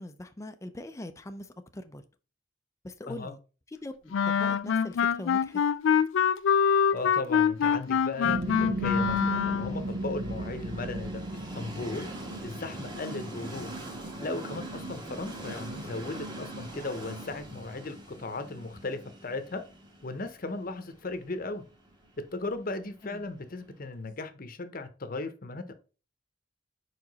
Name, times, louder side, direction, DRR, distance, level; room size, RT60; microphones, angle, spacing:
voice 1, 0.0-2.0 2.8-3.4 3.7-5.6 13.1-13.4 20.7-20.9 23.0-23.3, left 1 dB, 15° left, 0.4 m, -42 dB
Wind instrument woodwind instrument, 4.1-9.8, left 7 dB, 75° left, 0.3 m, -25 dB
voice 2, 6.9-11.2 11.5-12.1 12.4-13.7 14.2-19.6 20.0-21.6 22.2-25.8, left 3 dB, 50° left, 0.8 m, -36 dB
Train, 7.9-23.8, right 1 dB, 25° right, 1.3 m, -43 dB
sound 1, 8.2-15.0, right 1 dB, 60° right, 0.7 m, -36 dB
4.9 x 4.8 x 4.0 m
head